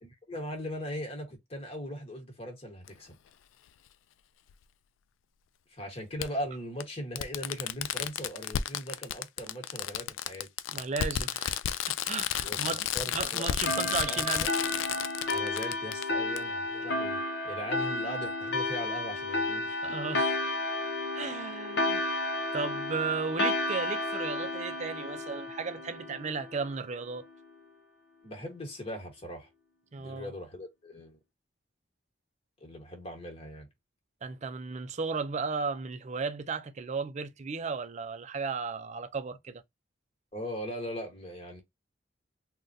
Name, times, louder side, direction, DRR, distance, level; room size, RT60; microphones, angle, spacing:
voice 1, 0.0-3.2 5.7-10.5 12.4-13.5 13.7-14.5 15.3-19.8 28.2-29.5 30.0-31.2 32.6-33.7 40.3-41.6, equal, 30° left, 1.3 m, -39 dB
Fireworks, 2.9-3.0 4.5-4.6 6.2-6.3 6.8-6.9 7.2-16.0 16.4-16.5, left 10 dB, 85° left, 0.3 m, -32 dB
voice 2, 10.7-12.9 13.1-14.5 19.8-20.5 21.1-22.0 22.5-27.2 29.9-30.3 34.2-39.6, right 5 dB, 40° right, 0.4 m, -35 dB
sound 1, 13.7-26.8, left 2 dB, 60° left, 0.7 m, -32 dB
3.8 x 2.2 x 2.6 m
head